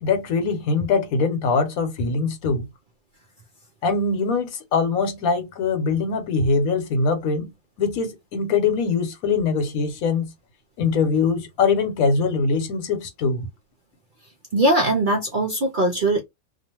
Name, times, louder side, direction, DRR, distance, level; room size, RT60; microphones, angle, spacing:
voice 1, 0.0-2.6 3.8-7.5 7.8-10.3 10.8-13.4, left 4 dB, 85° left, 1.2 m, -22 dB
voice 2, 14.5-16.2, right 1 dB, 65° right, 0.5 m, -20 dB
2.5 x 2.4 x 2.8 m
omnidirectional pair, 1.5 m